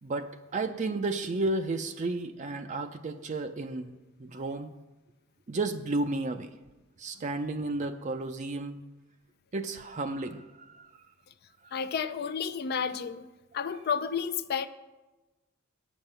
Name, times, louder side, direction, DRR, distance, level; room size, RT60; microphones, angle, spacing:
voice 1, 0.0-4.7 5.5-6.5 7.0-8.8 9.5-10.9, right 2 dB, 35° right, 0.5 m, -33 dB
voice 2, 11.7-13.3 13.5-14.7, left 6 dB, 50° left, 0.4 m, -31 dB
9.2 x 7.2 x 6.7 m
head